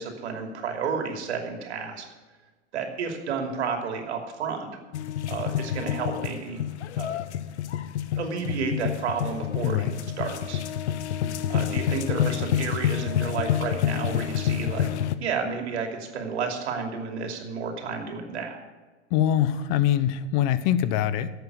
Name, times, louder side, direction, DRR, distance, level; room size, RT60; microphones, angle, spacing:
voice 1, 0.0-2.0 2.7-4.8 5.3-6.6 6.9-7.2 8.2-9.9 10.2-10.6 11.5-14.9 15.2-18.6, right 5 dB, 75° right, 3 dB, 2.8 m, -31 dB
sound 1, 4.9-15.2, left 10 dB, 75° left, 0.9 m, -28 dB
voice 2, 9.6-9.9 19.1-21.3, left 10 dB, 45° left, 14 dB, 0.9 m, -23 dB
12.0 x 8.3 x 8.3 m, 1.3 s
hypercardioid pair, 125°, 34 cm